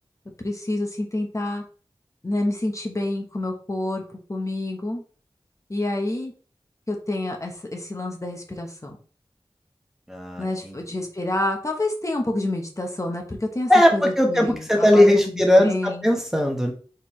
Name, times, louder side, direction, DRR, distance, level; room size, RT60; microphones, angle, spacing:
voice 1, 0.4-1.6 2.2-5.0 5.7-6.3 6.9-9.0 10.4-16.1, left 1 dB, 30° left, 2 dB, 0.9 m, -28 dB
voice 2, 10.1-10.8 13.7-16.7, left 1 dB, 5° right, 2 dB, 1.1 m, -19 dB
4.4 x 3.8 x 3.1 m, 0.41 s
wide cardioid pair, 55°, 10 cm